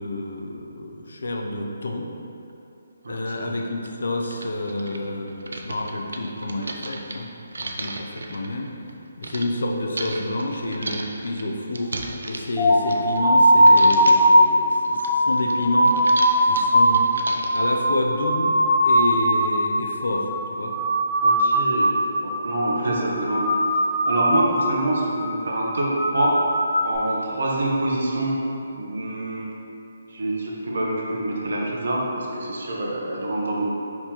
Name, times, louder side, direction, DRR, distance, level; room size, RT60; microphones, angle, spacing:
voice 1, 0.0-2.1 3.1-8.7 9.2-11.9 12.3-16.0 16.5-17.1 17.5-20.8, left 2 dB, 70° left, 2 dB, 0.5 m, -29 dB
voice 2, 3.0-3.5 21.2-21.9 22.2-23.6 24.0-26.4 26.8-28.3 28.7-29.5 30.1-33.7, right 1 dB, 60° right, -3 dB, 0.8 m, -26 dB
sound 1, 3.2-3.3 3.9-4.0 4.2-9.5 9.9-13.4 13.6-14.3 14.7-17.7, right 2 dB, 75° right, 0.4 m, -35 dB
sound 2, 12.6-19.5 19.8-20.3 20.6-22.1 22.3-22.8 23.1-24.5 24.9-25.2 25.6-26.9, equal, 10° right, 0.8 m, -19 dB
4.3 x 4.1 x 3.0 m, 2.8 s
hypercardioid pair, 175°, 0 cm